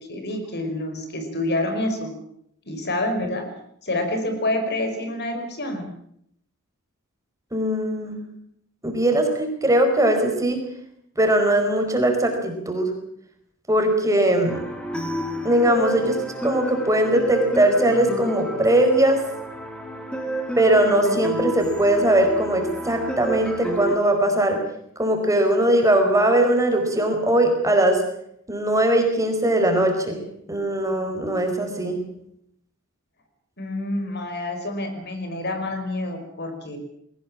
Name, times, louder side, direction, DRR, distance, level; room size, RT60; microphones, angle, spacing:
voice 1, 0.0-2.1 2.7-3.4 3.8-5.9 33.6-36.8, left 1 dB, 50° left, 6 dB, 5.4 m, -27 dB
voice 2, 7.5-8.2 8.8-10.6 11.2-12.9 13.7-14.6 15.4-16.2 16.4-19.2 20.6-24.6 25.0-28.0 28.5-30.2 30.5-32.0, right 1 dB, 15° right, 4 dB, 4.8 m, -20 dB
sound 1, 14.5-24.0, equal, 5° left, 3.2 m, -30 dB
21.0 x 19.0 x 8.7 m, 0.72 s
head